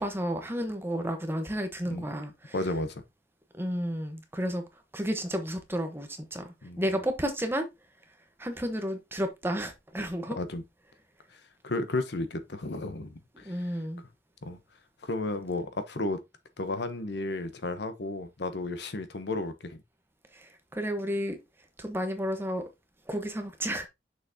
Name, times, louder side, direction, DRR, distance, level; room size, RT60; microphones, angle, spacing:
voice 1, 0.0-2.5 3.6-4.6 4.9-6.5 6.8-7.6 8.4-10.4 13.4-14.0 20.7-21.4 21.8-22.6 23.1-23.9, equal, 10° right, 1.0 m, -31 dB
voice 2, 2.5-3.0 6.6-6.9 10.4-10.6 11.6-13.8 14.4-14.6 15.0-16.2 16.6-19.8, left 2 dB, 65° left, 0.9 m, -33 dB
6.4 x 5.8 x 2.7 m
head